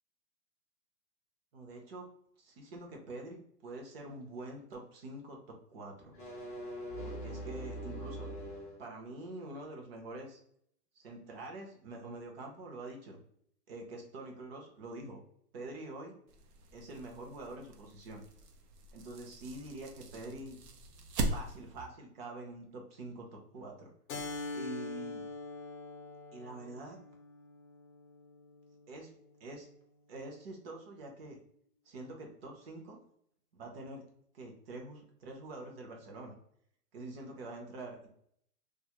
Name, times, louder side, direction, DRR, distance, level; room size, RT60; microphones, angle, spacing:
voice 1, 1.5-2.1 2.4-6.1 7.0-8.3 8.8-10.4 11.0-13.2 13.7-15.2 15.5-16.1 16.7-18.2 18.9-20.6 21.3-23.9 24.5-25.2 26.3-27.0 28.9-29.1 29.4-29.7 30.1-31.4 31.9-33.0 33.5-34.0 34.3-36.3 36.9-38.1, right 2 dB, 40° right, 1 dB, 0.6 m, -46 dB
sound 1, 6.0-8.8, right 1 dB, 10° left, 0.4 m, -42 dB
sound 2, 16.3-21.9, right 2 dB, 80° right, 0.6 m, -41 dB
Keyboard (musical), 24.1-29.2, left 3 dB, 60° left, 0.6 m, -44 dB
2.3 x 2.0 x 2.9 m, 0.68 s
hypercardioid pair, 145°, 46 cm